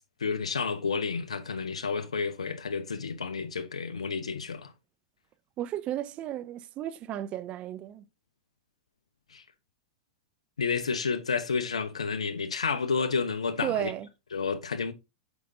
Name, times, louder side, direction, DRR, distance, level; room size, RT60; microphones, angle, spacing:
voice 1, 0.2-4.7 9.3-9.4 10.6-13.9 14.3-14.9, left 5 dB, 90° left, 0.8 m, -30 dB
voice 2, 5.6-8.0 13.6-14.1, right 12 dB, 40° right, 0.6 m, -33 dB
8.1 x 5.1 x 2.7 m
hypercardioid pair, 100°, 3 cm